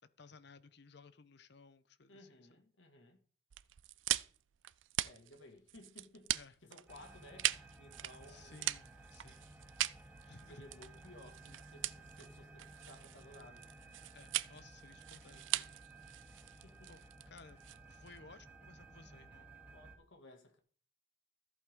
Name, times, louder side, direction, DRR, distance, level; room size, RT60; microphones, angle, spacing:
voice 1, 0.2-2.5 6.3-6.5 8.3-9.5 10.3-10.6 14.1-15.8 16.9-17.6 17.9-19.5, left 4 dB, 65° left, 0.9 m, -58 dB
voice 2, 2.1-3.2 5.0-6.3 6.6-8.7 10.5-13.7 16.6-16.9 19.7-20.6, left 1 dB, 85° left, 2.0 m, -58 dB
sound 1, 3.5-18.2, right 14 dB, 90° right, 0.4 m, -41 dB
sound 2, 6.9-20.0, right 2 dB, 10° right, 2.1 m, -56 dB
14.0 x 8.4 x 3.7 m
head